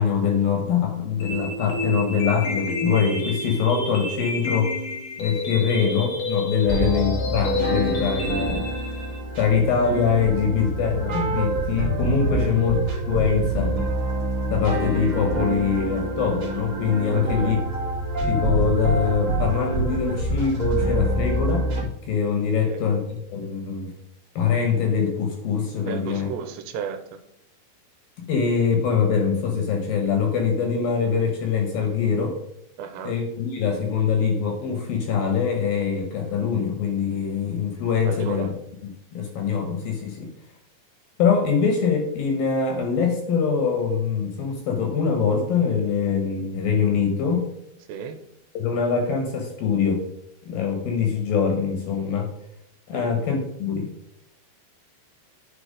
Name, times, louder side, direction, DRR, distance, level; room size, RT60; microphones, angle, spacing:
voice 1, 0.0-4.7 5.2-8.6 9.4-12.8 13.1-13.8 14.5-17.6 18.3-23.9 24.4-26.3 28.2-32.4 33.0-38.5 39.1-40.3 41.2-47.5 48.5-50.0 50.5-52.3 52.9-53.9, left 6 dB, 70° left, 3 dB, 2.4 m, -23 dB
sound 1, 1.2-9.2, left 2 dB, 85° left, 1.4 m, -29 dB
sound 2, 6.6-21.8, right 1 dB, 60° right, 0.8 m, -26 dB
voice 2, 17.1-17.6 22.6-22.9 25.8-27.2 32.8-33.1 38.1-38.5 47.9-48.2 52.9-53.1, right 7 dB, 80° right, 8 dB, 2.9 m, -34 dB
10.5 x 4.6 x 5.0 m, 0.76 s
omnidirectional pair, 5.1 m